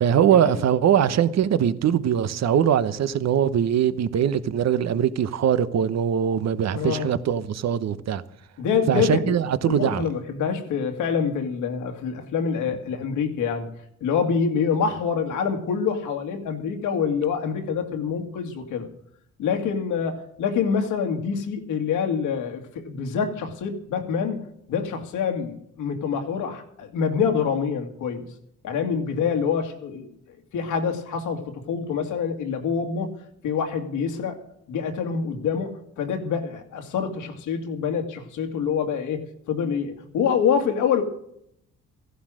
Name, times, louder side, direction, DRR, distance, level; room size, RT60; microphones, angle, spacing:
voice 1, 0.0-8.2 8.9-10.1, right 9 dB, 60° right, 1.0 m, -22 dB
voice 2, 6.7-7.1 8.6-9.4 9.7-13.7 14.0-18.9 19.4-24.4 24.7-28.3 28.6-33.1 33.4-34.4 34.7-41.0, left 6 dB, 90° left, 2.2 m, -26 dB
15.5 x 11.5 x 6.3 m
cardioid pair, 90°, 30 cm